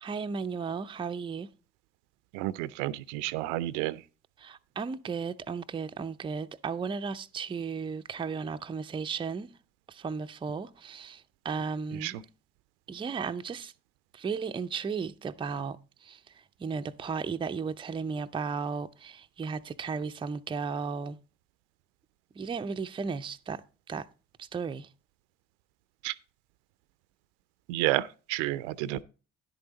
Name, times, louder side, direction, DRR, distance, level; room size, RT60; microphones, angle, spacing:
voice 1, 0.0-1.5 4.4-9.6 9.9-12.2 12.9-13.7 14.1-16.2 16.6-21.2 22.4-23.6 23.9-24.1 24.4-24.9, right 5 dB, 15° right, 0.5 m, -35 dB
voice 2, 2.3-4.0 12.0-12.1 26.0-26.1 27.7-29.0, right 16 dB, 65° right, 0.5 m, -30 dB
10.5 x 7.9 x 3.9 m
hypercardioid pair, 60°, 38 cm